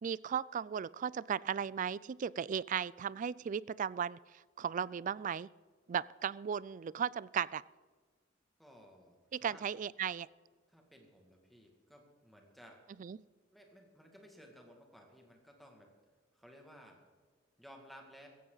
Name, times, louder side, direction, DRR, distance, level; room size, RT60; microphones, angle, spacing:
voice 1, 0.0-5.5 5.9-7.6 9.3-10.3 13.0-13.2, right 8 dB, 40° right, 21 dB, 0.3 m, -36 dB
voice 2, 8.6-9.6 10.7-12.8 13.5-15.9 16.3-17.0 17.6-18.3, equal, ahead, 1 dB, 2.2 m, -57 dB
16.0 x 15.0 x 4.0 m, 1.5 s
head